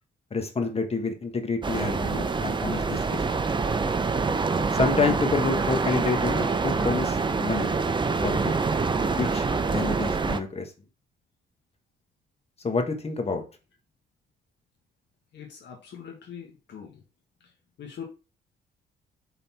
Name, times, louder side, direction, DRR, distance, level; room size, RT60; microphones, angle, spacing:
voice 1, 0.3-3.4 4.7-7.7 8.2-8.5 9.0-10.7 12.6-13.5, left 4 dB, 30° left, 5 dB, 1.5 m, -28 dB
sound 1, 1.6-10.4, right 4 dB, 25° right, 0.6 m, -26 dB
voice 2, 15.3-17.0 17.8-18.0, left 7 dB, 60° left, 0 dB, 1.5 m, -42 dB
5.7 x 4.0 x 4.3 m, 0.32 s
cardioid pair, 90°, 20 cm